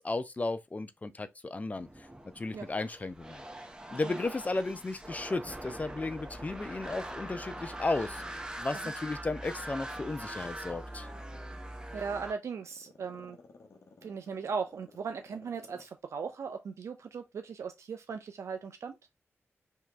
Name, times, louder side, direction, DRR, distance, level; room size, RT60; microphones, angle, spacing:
voice 1, 0.0-1.9 2.4-3.4 3.9-11.1, left 2 dB, 30° left, 0.5 m, -34 dB
sound 1, 1.7-12.3, right 1 dB, 15° right, 0.8 m, -43 dB
Growling, 3.5-5.2 5.7-8.7 9.1-15.9 16.2-16.3, left 4 dB, 60° left, 0.9 m, -56 dB
voice 2, 11.9-13.4 14.0-19.0, right 5 dB, 70° right, 0.4 m, -38 dB
2.9 x 2.8 x 3.4 m
cardioid pair, 65°, 5 cm